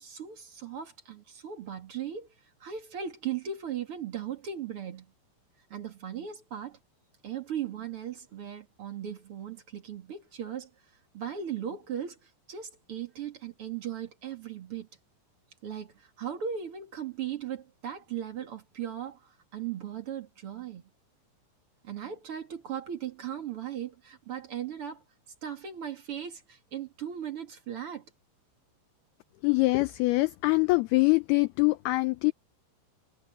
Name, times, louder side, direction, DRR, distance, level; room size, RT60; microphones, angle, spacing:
voice 1, 0.0-2.3 2.6-5.1 5.7-6.8 7.2-10.7 11.1-14.9 15.6-20.8 21.8-25.0 25.4-28.0, right 9 dB, 45° right, 2.0 m, -37 dB
voice 2, 29.4-32.3, left 23 dB, 80° left, 2.4 m, -24 dB
omnidirectional pair, 5.1 m